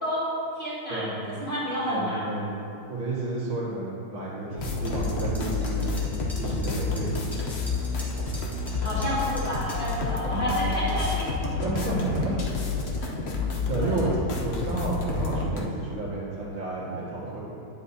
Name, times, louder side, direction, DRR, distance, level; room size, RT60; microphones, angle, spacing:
voice 1, 0.0-1.1 1.4-2.3 8.8-11.8 13.0-13.1 13.8-14.1, equal, 25° left, -10 dB, 1.5 m, -30 dB
voice 2, 1.8-2.5 2.9-5.8 6.4-7.2 10.2-10.9 11.6-12.3 12.7-13.0 13.7-14.1 14.4-17.4, right 2 dB, 75° right, -7 dB, 2.5 m, -31 dB
sound 1, 4.6-15.6, left 4 dB, 75° left, 0.5 m, -29 dB
sound 2, 4.9-10.0, equal, ahead, 0.8 m, -44 dB
9.7 x 6.5 x 2.8 m, 2.8 s
omnidirectional pair, 2.2 m